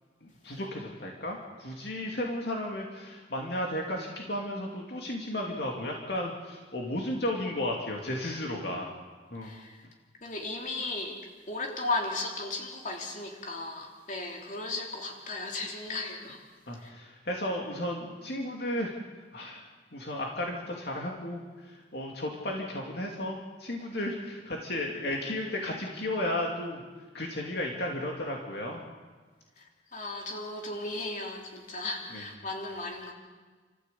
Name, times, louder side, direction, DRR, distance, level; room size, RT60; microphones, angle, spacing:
voice 1, 0.2-8.9 9.3-9.6 16.7-18.9 19.3-26.8 27.1-28.8 32.1-32.3, left 1 dB, 60° left, 0 dB, 2.7 m, -34 dB
voice 2, 9.4-9.8 10.2-11.2 11.5-16.4 16.8-16.9 29.6-33.1, left 2 dB, 40° left, 1 dB, 3.5 m, -35 dB
30.0 x 14.5 x 8.4 m, 1.4 s
head